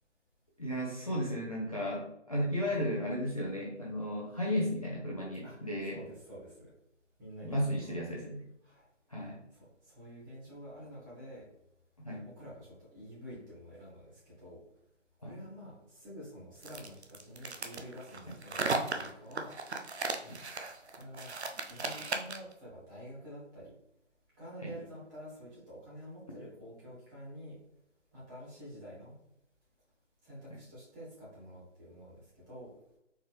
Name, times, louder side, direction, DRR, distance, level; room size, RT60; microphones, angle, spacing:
voice 1, 0.6-6.0 7.4-8.4 9.1-9.4 12.0-12.3 15.2-15.4 20.2-20.4 24.6-24.7, equal, 30° left, -3 dB, 0.5 m, -34 dB
voice 2, 5.8-6.7 7.2-8.2 8.6-8.8 9.5-11.4 12.2-14.6 15.2-19.5 20.9-21.3 21.7-23.7 24.4-27.6 28.1-29.1 30.2-32.7, equal, 15° right, -8 dB, 1.5 m, -48 dB
sound 1, 16.6-22.5, right 3 dB, 60° right, 0.7 m, -36 dB
4.4 x 3.5 x 3.1 m, 0.81 s
figure-of-eight pair, 150°, 37 cm